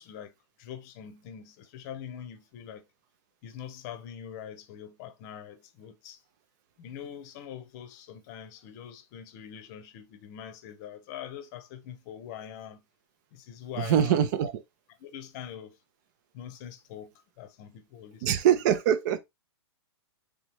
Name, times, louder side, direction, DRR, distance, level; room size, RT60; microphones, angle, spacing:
voice 1, 0.0-2.9 3.4-6.2 6.8-12.8 13.3-14.2 15.0-15.8 16.3-18.3 18.7-18.8, left 9 dB, 40° left, 0.8 m, -43 dB
voice 2, 13.8-14.5 18.2-19.2, right 10 dB, 40° right, 0.6 m, -23 dB
4.0 x 3.5 x 3.1 m
figure-of-eight pair, 110°, 14 cm